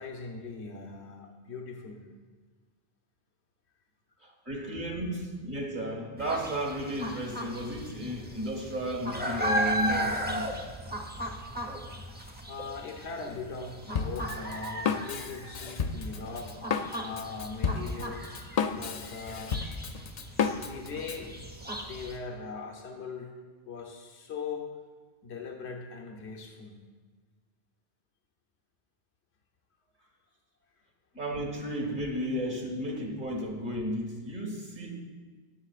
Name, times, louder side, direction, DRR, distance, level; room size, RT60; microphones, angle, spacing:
voice 1, 0.0-2.0 12.5-16.5 17.0-19.6 20.6-21.5 21.8-23.3 23.7-24.7 25.2-26.8, left 4 dB, 80° left, 1 dB, 1.2 m, -40 dB
voice 2, 4.2-10.5 31.1-34.9, right 1 dB, 50° right, 0 dB, 1.8 m, -33 dB
sound 1, 6.2-22.2, equal, 10° right, 0.9 m, -36 dB
Drum kit, 13.9-21.2, left 6 dB, 50° left, 0.5 m, -32 dB
18.0 x 7.0 x 2.4 m, 1.4 s
omnidirectional pair, 1.1 m